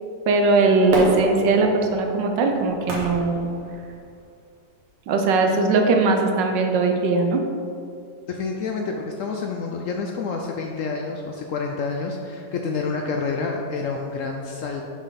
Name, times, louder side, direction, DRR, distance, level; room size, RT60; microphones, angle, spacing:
voice 1, 0.3-3.5 5.1-7.4, right 3 dB, 85° right, 3 dB, 1.4 m, -20 dB
Fireworks, 0.9-4.2 4.8-4.9, equal, 65° right, 1.6 m, -29 dB
voice 2, 8.3-14.8, left 4 dB, 80° left, 1 dB, 0.7 m, -28 dB
6.2 x 5.6 x 4.0 m, 2.4 s
omnidirectional pair, 1.9 m